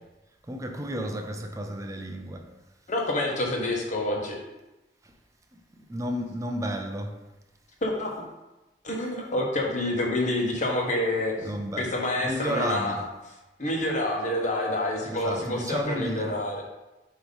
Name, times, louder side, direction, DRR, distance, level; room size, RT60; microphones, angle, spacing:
voice 1, 0.5-2.4 5.9-7.1 11.4-11.9 12.2-13.0 15.1-16.3, equal, 20° right, 0.6 m, -32 dB
voice 2, 2.9-4.4 7.8-8.1 8.8-11.5 11.8-13.0 13.6-16.6, left 1 dB, 45° left, 1.2 m, -27 dB
7.4 x 3.1 x 5.4 m
head